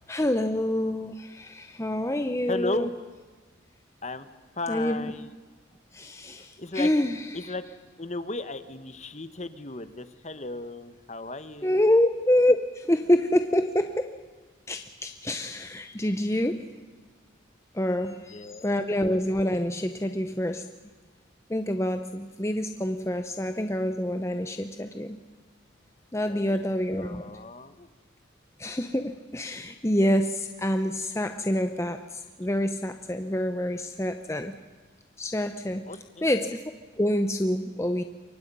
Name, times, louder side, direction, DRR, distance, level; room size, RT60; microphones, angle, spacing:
voice 1, 0.1-2.9 4.7-5.0 5.9-7.5 11.6-14.2 14.7-16.7 17.7-20.7 21.5-25.2 26.1-27.3 28.6-34.5 35.2-35.8 36.2-36.6 37.0-38.0, left 1 dB, 15° left, 7 dB, 0.8 m, -27 dB
voice 2, 2.5-2.9 4.0-4.3 4.6-5.3 6.4-6.9 7.3-7.6 8.0-11.8 18.3-18.8 26.3-26.6 27.0-27.9 35.8-36.3, left 2 dB, 35° left, 11 dB, 1.2 m, -35 dB
28.0 x 24.0 x 5.5 m, 1.4 s
head